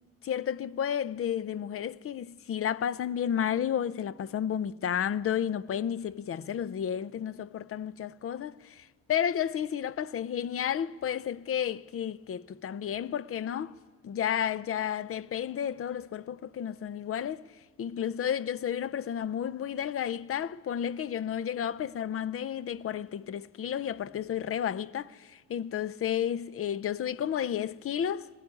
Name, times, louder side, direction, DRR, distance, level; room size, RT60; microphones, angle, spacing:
voice 1, 0.2-13.7 14.0-17.4 17.8-28.3, left 9 dB, 50° left, 0.6 m, -32 dB
20.0 x 15.5 x 9.7 m
cardioid pair, 90°, 30 cm